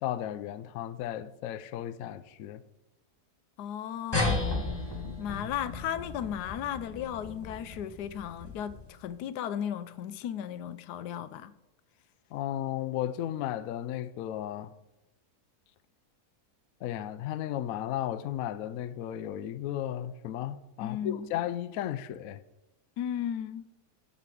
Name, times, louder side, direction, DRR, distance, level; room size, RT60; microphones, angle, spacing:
voice 1, 0.0-2.6 12.3-14.7 16.8-22.4, left 11 dB, 70° left, 0.9 m, -34 dB
voice 2, 3.6-4.7 5.2-11.5 20.8-21.3 23.0-23.7, left 9 dB, 85° left, 1.2 m, -35 dB
sound 1, 4.1-9.0, left 3 dB, 15° left, 1.5 m, -34 dB
11.0 x 4.2 x 7.7 m
omnidirectional pair, 1.7 m